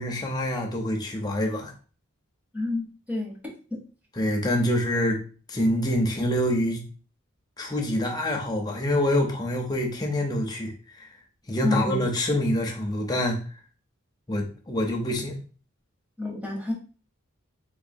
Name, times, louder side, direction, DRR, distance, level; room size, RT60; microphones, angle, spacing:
voice 1, 0.0-1.7 4.2-5.2 5.5-6.8 7.6-10.7 11.0-11.1 11.5-13.4 14.3-15.4, left 1 dB, 20° left, 0 dB, 0.6 m, -26 dB
voice 2, 2.5-3.8 11.6-12.0 16.2-16.7, left 2 dB, 5° right, -2 dB, 0.9 m, -29 dB
3.9 x 2.6 x 2.6 m, 0.38 s
head